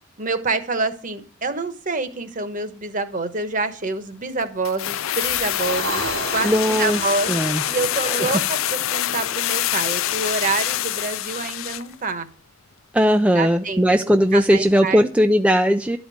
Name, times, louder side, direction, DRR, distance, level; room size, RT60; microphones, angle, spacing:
voice 1, 0.2-6.1 6.3-6.5 6.8-7.3 7.7-12.3 13.3-15.0, right 3 dB, 40° right, 1.1 m, -27 dB
sound 1, 4.6-11.9 12.2-12.3, left 12 dB, 80° left, 0.4 m, -25 dB
sound 2, 5.2-9.8, right 3 dB, 85° right, 3.1 m, -33 dB
voice 2, 6.4-7.0 7.3-7.6 8.1-8.2 12.9-16.0, equal, 5° right, 0.4 m, -18 dB
12.0 x 5.1 x 7.8 m
head